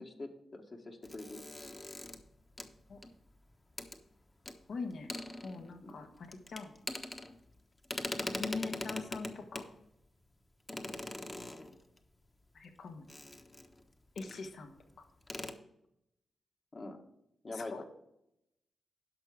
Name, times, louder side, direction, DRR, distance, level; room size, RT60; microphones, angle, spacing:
voice 1, 0.0-1.4 5.8-5.9 16.7-17.0 17.4-17.8, left 2 dB, 45° left, 2 dB, 1.5 m, -44 dB
sound 1, 1.0-3.4 3.8-4.0 4.4-4.6 4.9-5.9 6.2-7.6 7.8-9.8 10.7-12.0 13.1-13.8 14.2-14.5 14.8-14.9 15.2-15.5, left 2 dB, 30° left, 1.1 m, -42 dB
voice 2, 4.7-5.1 5.4-6.7 8.2-9.7 12.5-13.1 14.1-15.1 17.5-17.8, left 4 dB, 75° left, 5 dB, 1.4 m, -43 dB
11.0 x 5.9 x 4.9 m, 0.82 s
cardioid pair, 55°, 0 cm